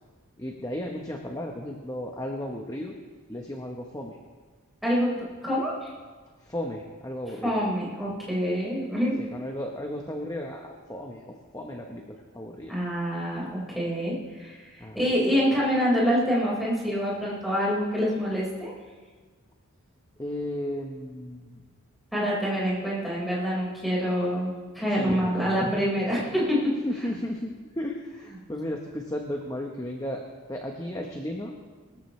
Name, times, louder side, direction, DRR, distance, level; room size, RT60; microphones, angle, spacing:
voice 1, 0.4-2.9 3.3-4.2 6.4-7.6 9.2-12.7 14.8-15.1 20.2-21.5 25.0-25.6 26.8-30.2 30.5-31.6, left 1 dB, 15° left, 1 dB, 1.0 m, -34 dB
voice 2, 5.4-5.9 7.4-9.2 12.7-18.7 22.1-26.7, equal, ahead, -7 dB, 4.7 m, -26 dB
22.5 x 14.0 x 3.2 m, 1.4 s
head